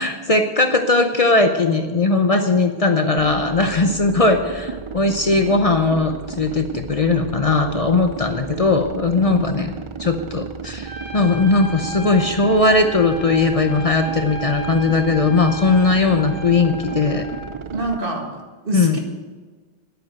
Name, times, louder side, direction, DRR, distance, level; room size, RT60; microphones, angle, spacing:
voice 1, 0.0-9.7 10.0-17.2 18.7-19.0, left 3 dB, 40° left, 6 dB, 0.8 m, -18 dB
sound 1, 3.2-18.0, right 6 dB, 40° right, 0.4 m, -34 dB
voice 2, 9.3-9.6 17.7-19.0, right 2 dB, 60° right, 2 dB, 2.1 m, -27 dB
Trumpet, 10.8-17.6, right 1 dB, 5° left, 2.3 m, -34 dB
10.5 x 9.1 x 7.8 m, 1.4 s
omnidirectional pair, 1.0 m